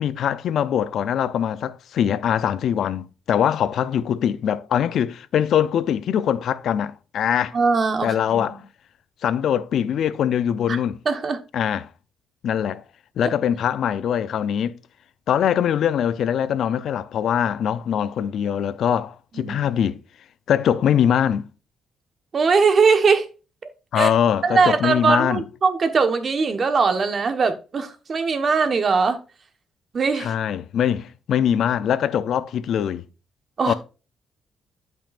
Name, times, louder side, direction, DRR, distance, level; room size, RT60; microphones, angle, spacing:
voice 1, 0.0-7.6 8.0-8.6 9.2-11.0 11.5-11.9 12.4-12.8 13.2-14.8 15.3-20.0 20.5-21.5 23.9-25.4 30.2-33.0 33.7-33.8, left 9 dB, 70° left, 0.5 m, -22 dB
voice 2, 7.5-8.6 10.7-10.8 11.0-11.4 19.3-19.6 22.3-23.3 24.0-24.1 24.4-29.2 29.9-30.3 33.6-33.7, right 4 dB, 45° right, 1.2 m, -20 dB
12.0 x 5.4 x 2.5 m
cardioid pair, 90°, 0 cm